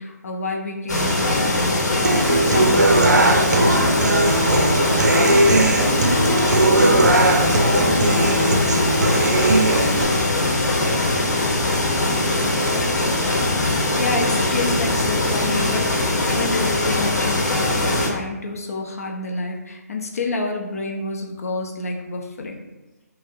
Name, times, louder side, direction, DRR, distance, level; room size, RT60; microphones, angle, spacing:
voice 1, 0.0-2.1 2.5-5.4 13.9-22.6, left 2 dB, 60° left, 1 dB, 0.5 m, -29 dB
sound 1, 0.9-18.1, left 2 dB, 80° left, 0.9 m, -21 dB
Human voice / Acoustic guitar, 2.0-10.0, right 2 dB, 80° right, 0.5 m, -18 dB
voice 2, 6.6-7.2 7.6-8.8 9.2-11.4 11.9-12.9, left 1 dB, 5° left, -8 dB, 0.5 m, -33 dB
5.5 x 2.0 x 2.5 m, 1.1 s
figure-of-eight pair, 150°, 9 cm